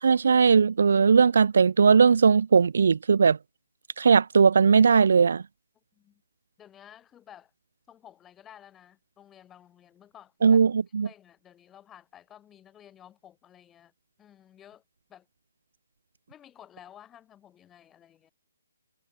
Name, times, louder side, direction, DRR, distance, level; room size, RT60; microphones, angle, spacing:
voice 1, 0.0-3.4 4.0-5.4 10.4-11.1, right 5 dB, 60° right, 0.3 m, -19 dB
voice 2, 6.6-7.5 7.9-10.6 11.0-13.9 14.2-14.8 15.1-15.3 16.3-18.3, left 10 dB, 15° left, 4.5 m, -53 dB
figure-of-eight pair, 140°, 0 cm